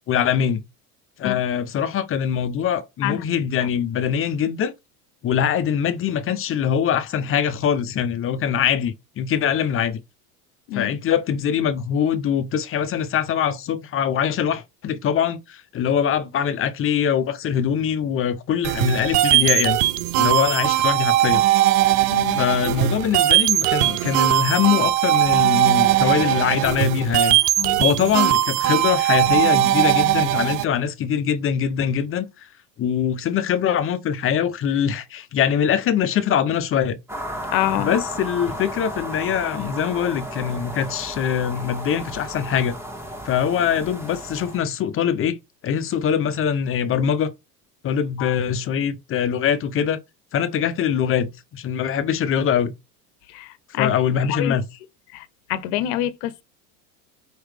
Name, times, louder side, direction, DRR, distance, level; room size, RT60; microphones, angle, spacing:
voice 1, 0.1-0.6 1.2-4.7 5.2-10.0 10.7-19.8 20.2-21.4 22.3-27.4 27.8-32.5 32.8-37.0 37.8-42.8 43.2-45.4 45.6-47.3 47.8-50.0 50.3-52.7 53.8-54.7, left 8 dB, 30° left, 0.5 m, -23 dB
sound 1, 18.6-30.6, right 14 dB, 70° right, 0.6 m, -19 dB
voice 2, 22.1-22.4 27.6-27.8 37.5-37.9 48.2-48.4 53.3-53.9 54.2-54.6 55.1-56.4, left 13 dB, 65° left, 0.7 m, -26 dB
sound 2, 37.1-44.6, equal, 5° right, 1.3 m, -34 dB
4.8 x 3.1 x 3.3 m
hypercardioid pair, 100°, 49 cm